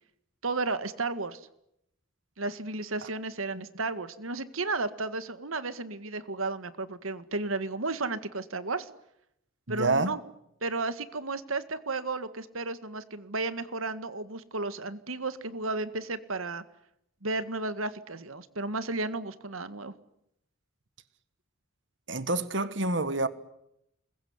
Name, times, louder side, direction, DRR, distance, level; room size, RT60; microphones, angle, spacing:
voice 1, 0.4-1.4 2.4-8.9 9.7-10.2 10.6-16.6 17.2-19.9, right 3 dB, 85° right, 1.9 m, -33 dB
voice 2, 9.7-10.1 22.1-23.3, right 2 dB, 60° right, 1.6 m, -27 dB
27.5 x 22.0 x 9.7 m
head